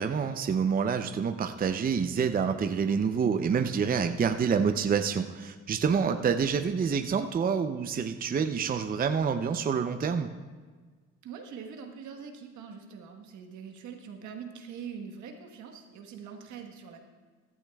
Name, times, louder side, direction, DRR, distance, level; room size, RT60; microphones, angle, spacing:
voice 1, 0.0-10.3, right 6 dB, 30° right, 8 dB, 0.6 m, -27 dB
voice 2, 11.2-17.0, right 6 dB, 75° right, 4 dB, 1.3 m, -43 dB
15.0 x 12.0 x 2.3 m, 1.4 s
supercardioid pair, 80°, 30 cm